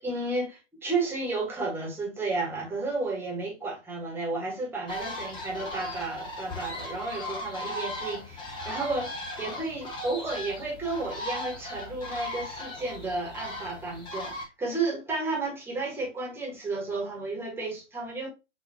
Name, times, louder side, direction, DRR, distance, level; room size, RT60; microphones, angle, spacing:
voice 1, 0.0-9.1 9.4-18.3, right 3 dB, 5° right, 1.4 m, -32 dB
sound 1, 4.9-14.5, left 1 dB, 15° left, 0.8 m, -38 dB
5.9 x 2.7 x 2.9 m
figure-of-eight pair, 120°, 38 cm